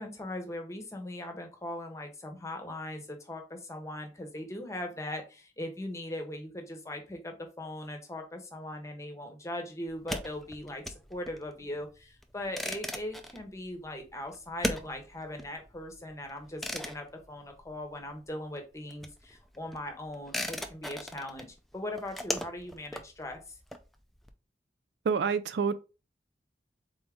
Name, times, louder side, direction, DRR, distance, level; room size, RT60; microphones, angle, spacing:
voice 1, 0.0-21.5 21.7-23.6, left 1 dB, 15° left, 0.8 m, -40 dB
sound 1, 9.9-18.2 18.5-24.3, equal, ahead, 0.3 m, -39 dB
voice 2, 25.1-25.7, right 6 dB, 75° right, 0.4 m, -27 dB
3.9 x 3.6 x 3.5 m
head